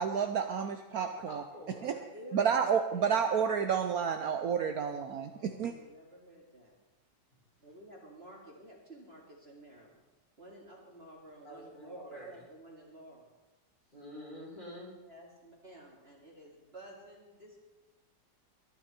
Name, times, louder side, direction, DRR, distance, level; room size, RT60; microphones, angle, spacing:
voice 1, 0.0-1.4 1.8-2.0 2.3-5.7, right 7 dB, 65° right, 6 dB, 1.1 m, -30 dB
voice 2, 0.9-1.8 11.4-12.4 13.9-14.9, equal, 25° left, -5 dB, 5.0 m, -47 dB
voice 3, 1.8-2.5 2.9-3.4 5.2-6.7 7.6-10.0 10.4-13.3 15.0-17.6, right 1 dB, 35° right, -2 dB, 2.5 m, -52 dB
22.0 x 10.5 x 4.4 m, 1.1 s
omnidirectional pair, 1.9 m